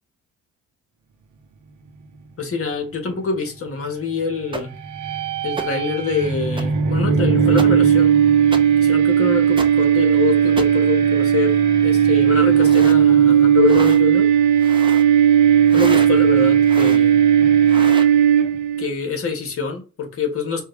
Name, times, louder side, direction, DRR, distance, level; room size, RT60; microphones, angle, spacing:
voice 1, 2.4-4.7 5.4-8.1 8.8-14.3 15.7-17.2 18.8-20.6, left 5 dB, 50° left, 1.5 m, -25 dB
sound 1, 4.5-4.6 5.6-5.7 6.6-6.7 7.6-7.7 8.5-8.6 9.6-9.7 10.6-10.7 12.5-13.0 13.6-14.0 14.6-15.1 15.7-16.1 16.7-17.0 17.6-18.1, right 2 dB, 15° right, 0.7 m, -30 dB
sound 2, 4.8-18.9, right 8 dB, 85° right, 0.9 m, -16 dB
5.3 x 2.4 x 3.2 m
cardioid pair, 90°, 30 cm